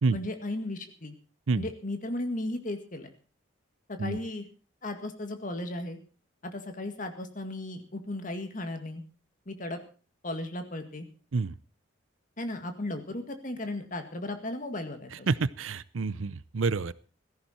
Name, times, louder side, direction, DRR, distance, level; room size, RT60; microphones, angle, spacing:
voice 1, 0.1-1.2 1.6-3.1 3.9-4.5 4.8-6.0 6.4-9.0 9.5-9.8 10.2-11.1 12.4-15.3, left 1 dB, 40° left, 7 dB, 2.0 m, -35 dB
voice 2, 15.3-16.9, right 4 dB, 85° right, 18 dB, 0.6 m, -28 dB
16.5 x 14.0 x 4.4 m, 0.37 s
head